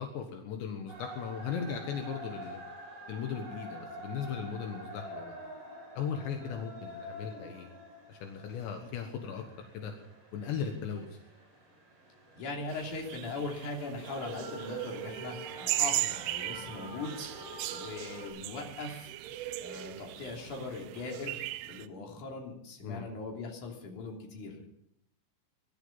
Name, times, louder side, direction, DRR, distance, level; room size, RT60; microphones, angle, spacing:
voice 1, 0.0-2.6 3.1-5.4 6.0-7.7 8.1-9.4 9.7-9.9 10.3-11.1 22.8-23.1, left 7 dB, 75° left, 4 dB, 3.6 m, -37 dB
sound 1, 0.9-18.3, right 1 dB, 50° right, 8.7 m, -47 dB
voice 2, 12.4-17.3 17.7-19.1 19.6-21.4 21.7-24.7, left 3 dB, 45° left, 0 dB, 4.2 m, -40 dB
sound 2, 12.7-21.9, right 15 dB, 80° right, 2.6 m, -37 dB
20.5 x 12.0 x 5.6 m, 0.76 s
omnidirectional pair, 5.2 m